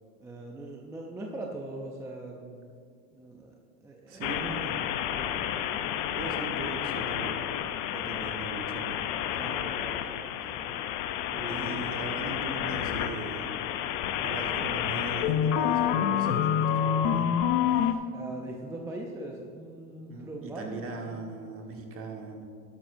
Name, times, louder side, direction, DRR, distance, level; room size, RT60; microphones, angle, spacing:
voice 1, 0.2-2.7 3.1-4.6 5.1-5.9 9.3-10.8 11.3-11.9 17.7-21.2, right 1 dB, 5° right, 0 dB, 0.3 m, -42 dB
voice 2, 4.1-4.9 6.1-7.5 7.9-9.1 11.5-13.5 14.2-17.3 20.1-22.5, right 3 dB, 30° right, 2 dB, 1.4 m, -39 dB
sound 1, 4.2-17.9, left 9 dB, 45° left, 0.6 m, -29 dB
12.0 x 11.5 x 2.6 m, 2.2 s
supercardioid pair, 125°, 46 cm